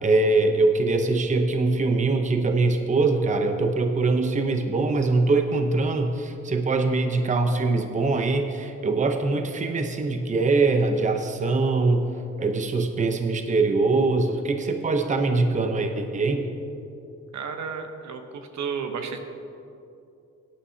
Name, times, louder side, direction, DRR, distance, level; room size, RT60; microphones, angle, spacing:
voice 1, 0.0-12.0 12.4-16.4, right 3 dB, 25° right, 6 dB, 0.8 m, -23 dB
voice 2, 17.3-19.2, right 6 dB, 65° right, 6 dB, 1.1 m, -32 dB
16.5 x 10.0 x 2.8 m, 2.7 s
cardioid pair, 90°, 30 cm